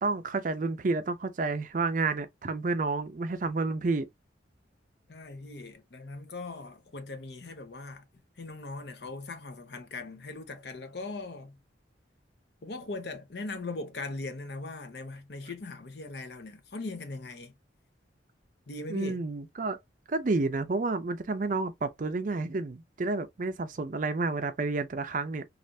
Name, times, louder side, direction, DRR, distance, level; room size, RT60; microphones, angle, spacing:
voice 1, 0.0-4.1 18.9-19.8 20.1-25.4, right 3 dB, 45° right, 0.4 m, -30 dB
voice 2, 5.1-8.0 8.4-11.6 12.6-17.5 18.7-19.2, left 3 dB, 60° left, 0.7 m, -40 dB
3.2 x 2.4 x 2.6 m
head